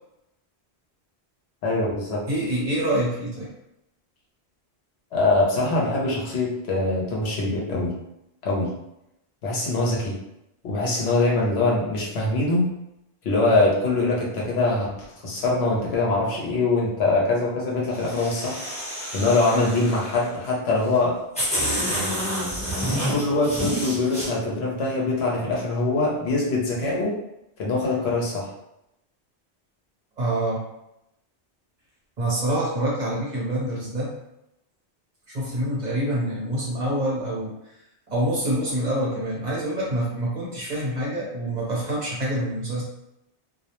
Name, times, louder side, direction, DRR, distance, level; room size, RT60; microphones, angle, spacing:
voice 1, 1.6-2.2 5.1-7.9 8.4-8.7 9.4-10.2 10.6-12.7 13.2-18.6 19.1-21.2 21.9-22.2 23.1-27.2 27.6-28.5, left 2 dB, 75° left, -3 dB, 0.9 m, -23 dB
voice 2, 2.3-3.5 30.2-30.6 32.2-34.2 35.3-37.6 38.1-42.8, right 1 dB, 45° right, -6 dB, 0.8 m, -26 dB
sound 1, 17.9-20.3 20.9-21.0 21.3-24.3, equal, 5° left, 0.8 m, -28 dB
2.3 x 2.0 x 2.9 m, 0.85 s
omnidirectional pair, 1.1 m